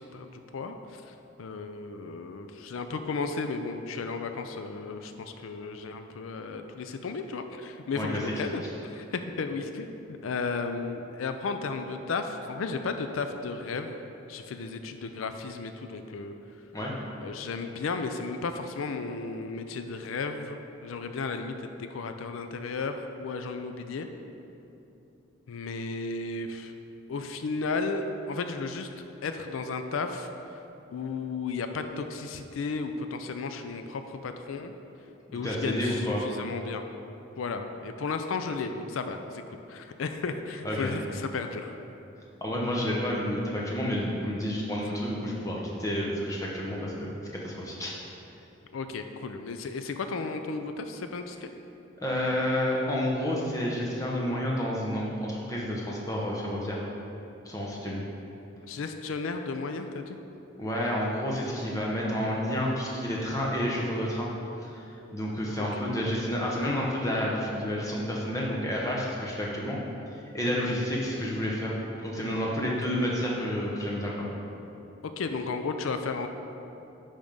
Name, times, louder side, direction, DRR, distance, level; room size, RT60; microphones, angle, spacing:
voice 1, 0.0-16.3 17.2-24.1 25.5-26.7 27.1-30.3 30.9-34.7 35.3-36.8 37.4-41.7 48.7-51.5 58.7-60.2 65.6-65.8 70.5-70.8 75.2-76.3, left 4 dB, 90° left, 7 dB, 0.4 m, -34 dB
voice 2, 35.3-36.2 40.6-40.9 42.4-47.1 47.4-47.9 52.0-56.8 57.4-58.0 60.6-64.3 64.6-69.8 70.1-71.7 72.0-74.3, equal, 15° left, -4 dB, 1.0 m, -30 dB
10.0 x 3.6 x 5.3 m, 2.9 s
head